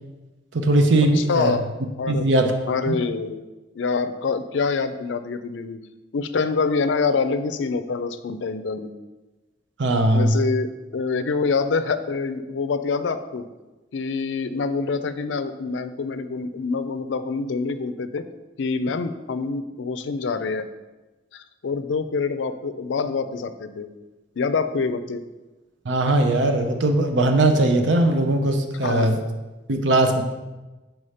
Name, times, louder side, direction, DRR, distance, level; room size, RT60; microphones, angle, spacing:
voice 1, 0.5-1.6 2.1-2.5 2.9-3.0 9.8-10.4 25.8-29.2 29.7-30.2, right 2 dB, 80° right, 5 dB, 0.7 m, -19 dB
voice 2, 1.2-1.7 2.0-2.2 2.7-3.4 3.7-5.8 6.1-8.9 10.1-13.5 13.9-18.2 18.6-20.7 21.3-23.9 24.4-25.2 28.8-29.2, left 4 dB, 85° left, 11 dB, 0.4 m, -26 dB
4.9 x 4.5 x 5.6 m, 1.1 s
head